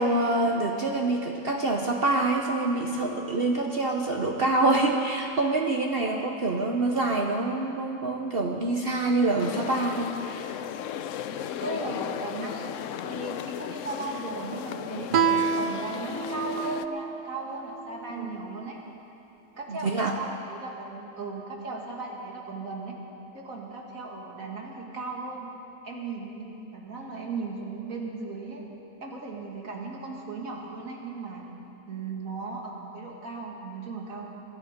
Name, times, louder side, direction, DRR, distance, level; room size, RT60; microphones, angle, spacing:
voice 1, 0.0-10.2 18.2-18.3 19.7-20.1, right 2 dB, 45° right, 2 dB, 1.0 m, -26 dB
sound 1, 9.4-16.9, left 9 dB, 70° left, 0.8 m, -35 dB
voice 2, 11.6-12.8 13.0-15.1 15.5-18.8 19.6-23.0 23.3-25.5 25.8-28.6 29.0-31.5 31.9-34.4, right 3 dB, 65° right, -1 dB, 2.5 m, -37 dB
Guitar, 15.1-18.4, right 6 dB, 90° right, 0.4 m, -29 dB
23.5 x 12.0 x 5.2 m, 2.9 s
omnidirectional pair, 1.6 m